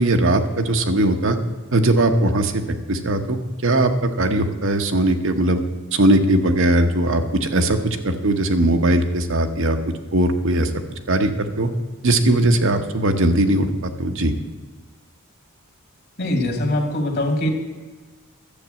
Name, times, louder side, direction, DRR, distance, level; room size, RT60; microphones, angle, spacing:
voice 1, 0.0-1.4 1.7-3.4 3.6-5.6 5.9-9.8 10.1-10.7 11.1-11.7 12.0-14.3, right 1 dB, 65° right, 6 dB, 1.1 m, -19 dB
voice 2, 16.2-17.5, left 1 dB, 50° left, 4 dB, 2.0 m, -22 dB
12.0 x 8.1 x 7.6 m, 1.3 s
head